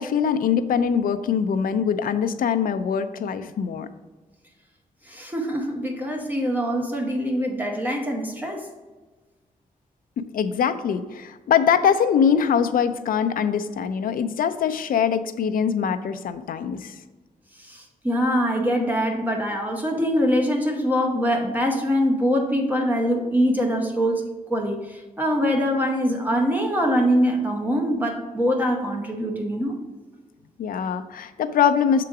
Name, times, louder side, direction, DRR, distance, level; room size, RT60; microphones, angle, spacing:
voice 1, 0.0-3.9 10.2-16.9 30.6-32.0, left 7 dB, 80° left, 9 dB, 0.5 m, -23 dB
voice 2, 5.1-8.6 17.6-24.2 24.5-29.8, equal, 10° right, 1 dB, 0.8 m, -23 dB
6.7 x 3.8 x 4.8 m, 1.3 s
wide cardioid pair, 175°, 14 cm